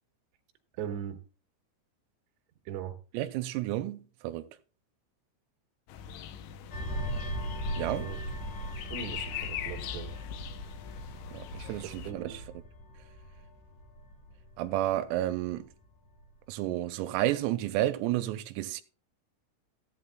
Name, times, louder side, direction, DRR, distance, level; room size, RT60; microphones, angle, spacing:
voice 1, 0.8-1.2 2.6-3.0 8.0-8.2 8.9-10.1 11.8-12.4, right 9 dB, 65° right, 3.3 m, -39 dB
voice 2, 3.1-4.5 7.8-8.1 11.3-12.2 14.6-15.7 16.5-18.8, right 14 dB, 90° right, 3.3 m, -31 dB
sound 1, 5.9-12.1, left 9 dB, 75° left, 2.8 m, -41 dB
sound 2, 6.7-15.7 16.1-16.3, equal, 55° left, 2.3 m, -39 dB
15.0 x 11.5 x 2.3 m
omnidirectional pair, 5.9 m